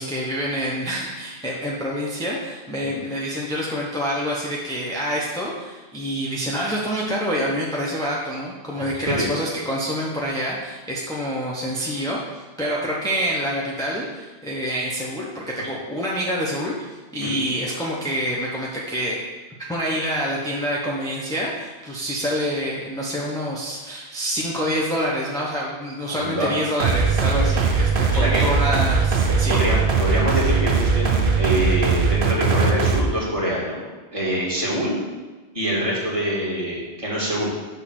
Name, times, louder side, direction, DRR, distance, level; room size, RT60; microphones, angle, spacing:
voice 1, 0.0-19.2 19.6-29.6, equal, 5° left, -5 dB, 0.7 m, -27 dB
voice 2, 8.8-9.3 15.6-15.7 17.2-17.4 26.1-26.5 28.1-28.5 29.5-33.8 34.1-35.0 35.5-37.5, equal, 30° right, -5 dB, 1.7 m, -25 dB
sound 1, 26.8-33.0, right 5 dB, 55° right, 0.9 m, -20 dB
6.1 x 3.7 x 6.0 m, 1.2 s
omnidirectional pair, 1.1 m